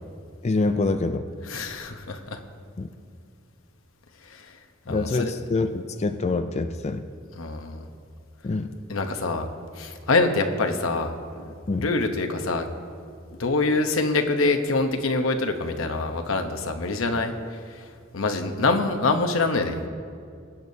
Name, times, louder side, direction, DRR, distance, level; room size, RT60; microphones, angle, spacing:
voice 1, 0.4-1.3 2.8-2.9 4.9-7.0 8.4-8.7 11.7-11.9, left 3 dB, 35° left, 7 dB, 0.4 m, -25 dB
voice 2, 1.5-2.4 4.2-4.6 4.9-5.3 7.4-7.9 8.9-9.5 9.8-12.7 13.4-17.3 17.7-17.8 18.1-19.9, left 3 dB, 85° left, 5 dB, 0.9 m, -25 dB
22.0 x 8.8 x 2.8 m, 2.3 s
head